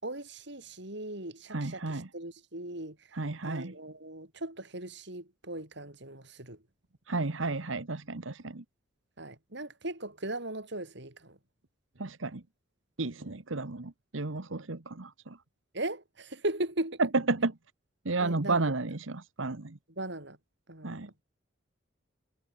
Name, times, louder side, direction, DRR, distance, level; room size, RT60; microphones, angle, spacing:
voice 1, 0.0-3.2 3.4-6.6 9.2-11.4 13.2-13.4 15.7-17.0 18.2-18.7 19.9-20.4 20.7-21.2, right 1 dB, 65° right, 7.1 m, -38 dB
voice 2, 1.5-2.1 3.1-3.7 7.1-8.6 12.0-12.4 13.0-15.4 17.3-17.5 18.0-19.8 20.8-21.1, right 3 dB, 90° right, 1.4 m, -33 dB
head